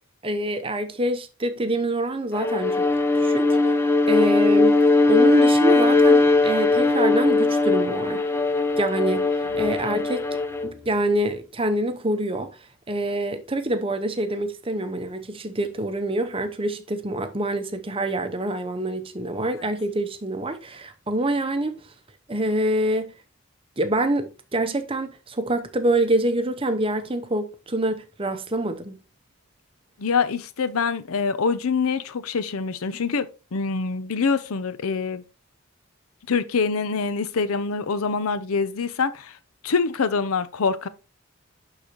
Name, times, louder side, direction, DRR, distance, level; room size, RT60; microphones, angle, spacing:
voice 1, 0.2-2.9 3.1-3.7 4.1-4.8 5.1-8.2 8.8-10.2 10.6-12.5 12.9-21.7 22.3-23.1 23.8-29.0, right 1 dB, 25° right, 0.7 m, -26 dB
Bowed string instrument, 2.3-10.7, left 3 dB, 10° left, 0.4 m, -19 dB
voice 2, 30.0-35.2 36.3-39.3 39.6-40.9, left 5 dB, 75° left, 0.6 m, -25 dB
11.5 x 3.9 x 3.0 m
head